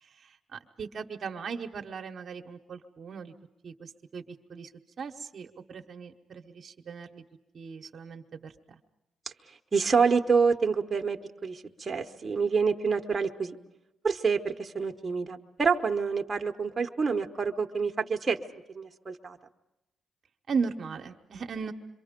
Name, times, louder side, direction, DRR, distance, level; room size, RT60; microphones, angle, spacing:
voice 1, 0.0-3.3 3.6-4.7 5.0-7.2 7.5-8.8 20.5-21.7, right 5 dB, 55° right, 4 dB, 1.0 m, -37 dB
voice 2, 9.7-13.6 14.0-18.4 18.7-19.4, right 5 dB, 30° right, 4 dB, 1.1 m, -27 dB
26.5 x 23.5 x 5.2 m, 0.93 s
cardioid pair, 85°, 0 cm